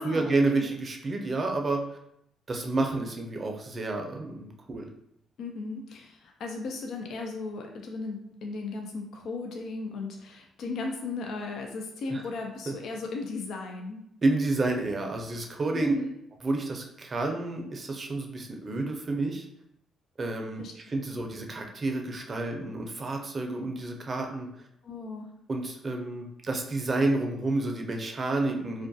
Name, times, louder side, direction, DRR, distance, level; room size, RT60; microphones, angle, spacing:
voice 1, 0.0-2.0 2.5-4.9 12.1-12.2 12.7-12.8 14.2-15.9 16.4-19.5 20.2-24.6 25.5-28.9, right 2 dB, 35° right, 2 dB, 0.5 m, -30 dB
voice 2, 5.4-14.0 15.7-16.1 20.6-20.7 21.1-21.2 24.8-25.3 28.8-28.9, left 3 dB, 70° left, 2 dB, 0.3 m, -36 dB
2.3 x 2.2 x 2.6 m, 0.77 s
cardioid pair, 80°, 0 cm